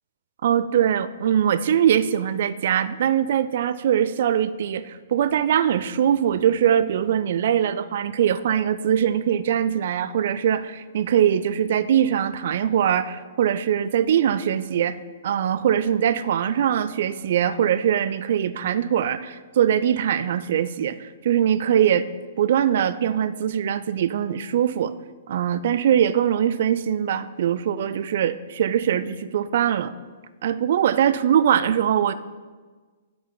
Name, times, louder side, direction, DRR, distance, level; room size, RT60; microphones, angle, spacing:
voice 1, 0.4-15.0 15.2-22.1 22.4-24.9 25.3-29.9 30.4-32.1, right 9 dB, 55° right, 15 dB, 0.3 m, -22 dB
9.3 x 8.8 x 2.2 m, 1.4 s
figure-of-eight pair, 115°, 0 cm